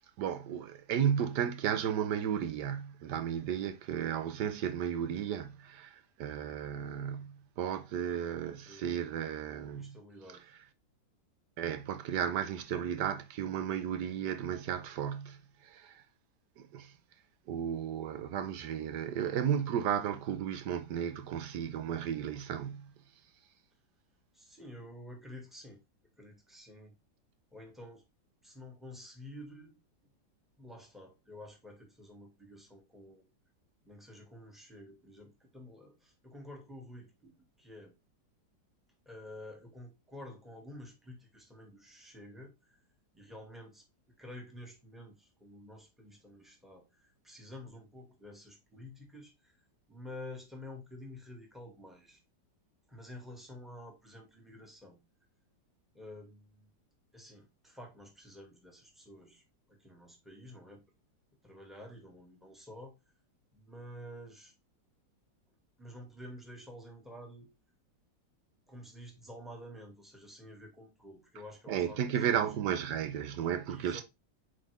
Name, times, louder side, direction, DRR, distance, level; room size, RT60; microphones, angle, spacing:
voice 1, 0.2-10.0 11.6-16.0 16.6-16.9 17.5-22.9 71.7-74.0, right 9 dB, 75° right, 1.3 m, -34 dB
voice 2, 8.5-9.0 9.8-10.5 24.3-25.8 26.2-26.9 27.5-28.0 28.4-29.8 30.6-33.3 33.8-37.9 39.1-42.8 43.1-52.2 52.9-55.0 55.9-56.7 57.1-60.8 61.4-62.9 63.5-64.5 65.8-67.5 68.7-72.0 72.3-72.5 73.7-74.0, left 1 dB, ahead, 1.9 m, -50 dB
8.1 x 4.0 x 3.3 m
omnidirectional pair, 1.9 m